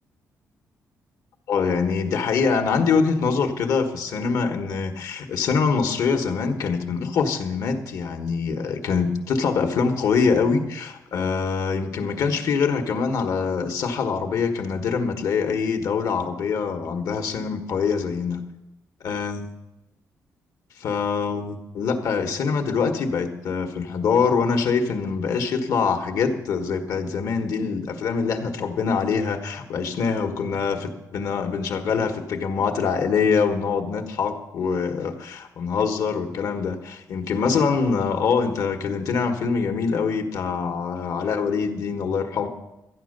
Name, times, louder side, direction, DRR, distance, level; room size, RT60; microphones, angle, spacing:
voice 1, 1.5-18.4 19.0-19.5 20.8-42.5, left 5 dB, 70° left, 5 dB, 1.3 m, -24 dB
13.0 x 9.7 x 6.5 m, 0.93 s
wide cardioid pair, 175°, 6 cm